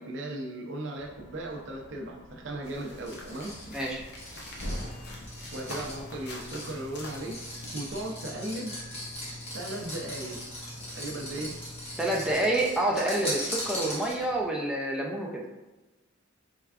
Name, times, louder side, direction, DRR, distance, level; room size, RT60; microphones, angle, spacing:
voice 1, 0.0-3.5 5.5-7.4 7.7-8.8 9.5-10.4 10.9-11.6, right 1 dB, 65° right, 1 dB, 0.6 m, -37 dB
sound 1, 1.0-12.4, left 1 dB, 70° left, 1.4 m, -45 dB
sound 2, 2.6-7.7, left 2 dB, 55° left, 0.7 m, -45 dB
sound 3, 3.0-14.4, equal, 35° left, 1.0 m, -40 dB
voice 2, 3.7-4.0 12.0-15.4, right 1 dB, 5° right, -2 dB, 0.4 m, -28 dB
4.5 x 3.3 x 2.4 m, 1.1 s
head